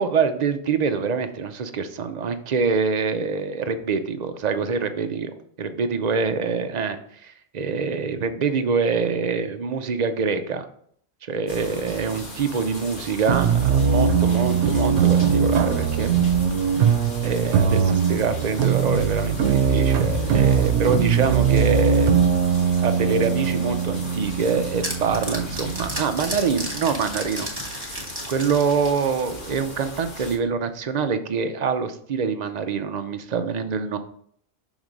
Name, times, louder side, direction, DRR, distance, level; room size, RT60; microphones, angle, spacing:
voice 1, 0.0-10.7 11.2-16.1 16.8-16.9 17.2-22.3 22.8-28.0 28.3-34.0, right 5 dB, 50° right, 9 dB, 0.6 m, -25 dB
sound 1, 11.5-30.4, left 1 dB, 50° left, 1.3 m, -37 dB
sound 2, 13.3-26.1, right 6 dB, 85° right, 0.9 m, -21 dB
sound 3, 24.1-29.6, right 1 dB, 20° right, 1.3 m, -33 dB
6.1 x 3.7 x 5.2 m, 0.64 s
omnidirectional pair, 1.1 m